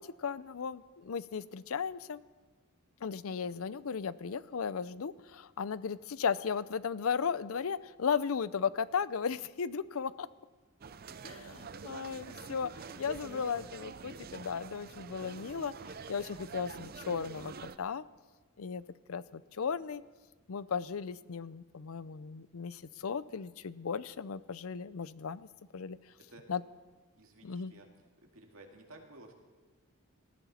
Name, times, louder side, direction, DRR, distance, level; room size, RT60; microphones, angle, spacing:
voice 1, 0.0-2.2 3.0-10.3 11.2-11.4 11.8-12.7 13.0-15.7 16.1-18.1 18.6-18.8 19.1-20.0 20.5-25.5 25.7-26.0 26.5-26.6 27.4-27.7, left 6 dB, 80° left, 17 dB, 0.5 m, -35 dB
sound 1, 10.8-17.8, right 5 dB, 45° right, 0.5 m, -46 dB
voice 2, 12.0-12.4 12.7-12.8 13.3-13.7 26.3-26.4 27.2-27.9 28.2-29.3, right 2 dB, 75° right, 2 dB, 2.3 m, -54 dB
19.5 x 14.5 x 4.3 m, 1.4 s
head